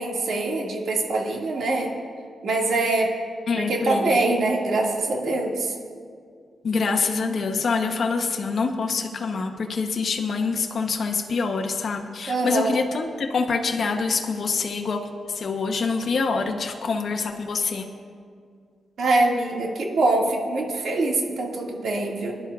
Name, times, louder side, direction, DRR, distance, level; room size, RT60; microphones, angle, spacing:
voice 1, 0.0-1.9 2.4-3.1 3.6-5.7 12.3-12.8 19.0-22.3, right 2 dB, 75° right, -1 dB, 1.9 m, -24 dB
voice 2, 3.5-4.2 6.6-17.9, left 4 dB, 60° left, 3 dB, 0.8 m, -25 dB
21.5 x 10.5 x 2.4 m, 2.1 s
cardioid pair, 65°, 0 cm